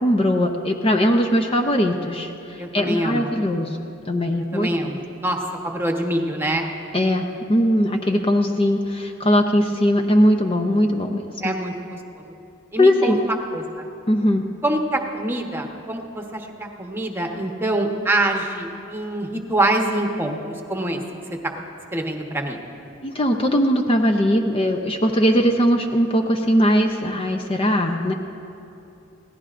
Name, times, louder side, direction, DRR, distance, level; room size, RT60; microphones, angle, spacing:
voice 1, 0.0-3.8 4.1-4.7 6.9-11.5 12.8-13.2 14.1-14.5 23.0-28.1, equal, 30° left, 3 dB, 0.7 m, -20 dB
voice 2, 2.6-3.3 4.5-5.4 5.6-6.7 11.4-12.2 12.7-13.8 14.6-21.0 21.9-22.6, right 1 dB, 10° right, 2 dB, 1.1 m, -25 dB
25.5 x 17.5 x 2.6 m, 2.8 s
head